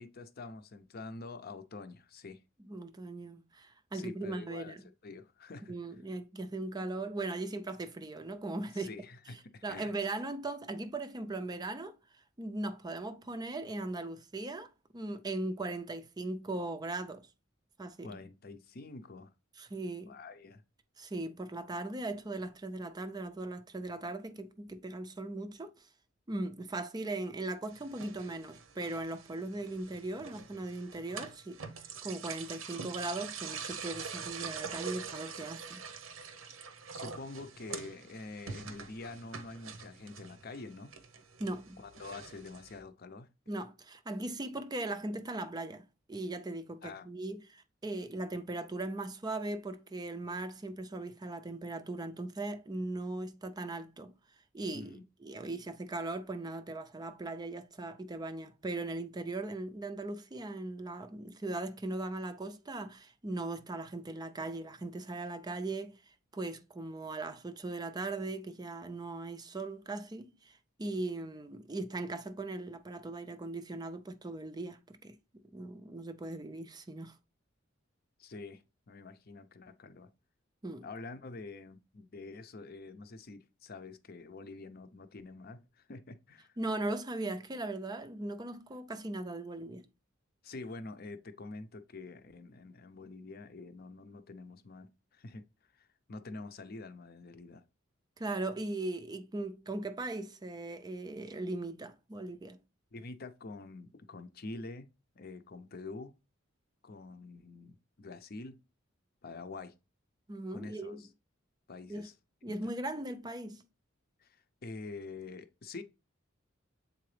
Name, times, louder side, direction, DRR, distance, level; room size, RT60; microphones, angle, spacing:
voice 1, 0.0-2.4 3.9-4.8 5.0-5.7 8.7-9.9 18.0-19.3 20.1-20.6 36.9-40.9 41.8-43.3 46.8-47.1 54.7-55.0 78.2-80.1 80.8-86.5 90.4-95.4 95.7-97.6 102.9-104.9 105.2-106.1 106.8-108.6 109.2-109.7 110.5-111.1 111.7-112.1 112.5-112.6 114.2-115.8, left 3 dB, 50° left, 0.6 m, -46 dB
voice 2, 2.6-4.8 5.7-9.0 9.6-12.0 12.4-17.3 17.8-18.2 19.6-20.2 21.0-25.9 26.3-35.8 41.4-41.8 43.5-54.1 54.5-66.0 66.3-77.2 80.6-80.9 86.6-89.9 98.2-102.6 110.3-111.0 111.9-112.1 112.4-113.6, right 2 dB, 20° right, 0.4 m, -39 dB
sound 1, 27.7-42.8, right 6 dB, 90° right, 0.8 m, -45 dB
7.5 x 3.9 x 3.2 m
head